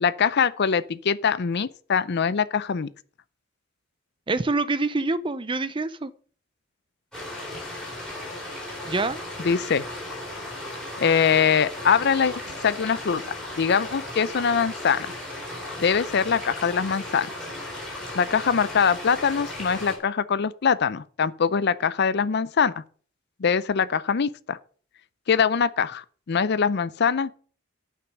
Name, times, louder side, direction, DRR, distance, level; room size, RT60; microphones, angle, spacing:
voice 1, 0.0-2.9 9.4-9.8 11.0-13.2 13.6-15.1 15.8-17.3 18.1-22.8 23.4-24.6 25.3-27.3, left 6 dB, 55° left, 0.5 m, -23 dB
voice 2, 4.3-6.1 8.9-9.2, right 3 dB, 25° right, 0.6 m, -26 dB
sound 1, 7.1-20.0, left 1 dB, 5° left, 4.0 m, -36 dB
9.6 x 5.9 x 6.5 m
head